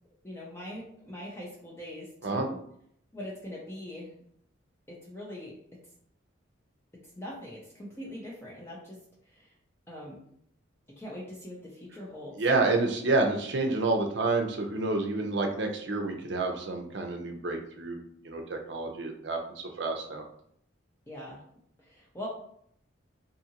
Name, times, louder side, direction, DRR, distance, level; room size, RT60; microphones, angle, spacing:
voice 1, 0.2-2.6 3.1-4.1 4.9-5.5 7.2-9.0 9.3-9.5 9.9-10.3 11.0-12.4 21.1-21.4 21.8-22.3, left 1 dB, 10° left, -5 dB, 0.5 m, -42 dB
voice 2, 12.4-18.0 18.2-19.4 19.8-20.2, right 3 dB, 60° right, 3 dB, 0.5 m, -28 dB
2.7 x 2.5 x 2.8 m, 0.68 s
head